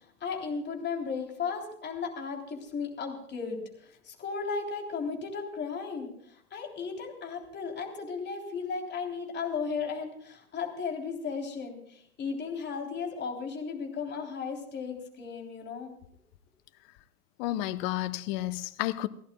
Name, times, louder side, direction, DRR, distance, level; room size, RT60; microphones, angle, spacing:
voice 1, 0.0-16.0, left 5 dB, 25° left, 3.5 m, -35 dB
voice 2, 17.4-19.1, left 16 dB, 40° left, 0.9 m, -31 dB
30.0 x 14.0 x 2.3 m
figure-of-eight pair, 95°, 44 cm